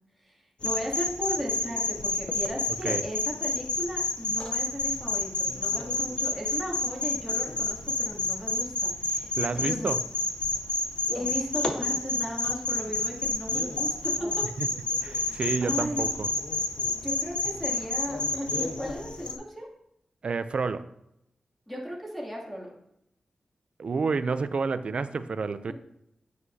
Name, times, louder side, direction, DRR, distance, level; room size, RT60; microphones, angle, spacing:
sound 1, 0.6-19.4, left 3 dB, 60° left, 0.8 m, -30 dB
voice 1, 0.6-9.9 11.1-14.5 15.0-16.1 17.0-19.7 21.7-22.7, equal, 5° left, -4 dB, 2.7 m, -36 dB
voice 2, 9.3-10.0 14.6-14.7 15.0-16.3 20.2-20.9 23.8-25.7, right 4 dB, 60° right, 12 dB, 0.5 m, -29 dB
9.5 x 8.2 x 2.8 m, 0.78 s
wide cardioid pair, 80°, 2 cm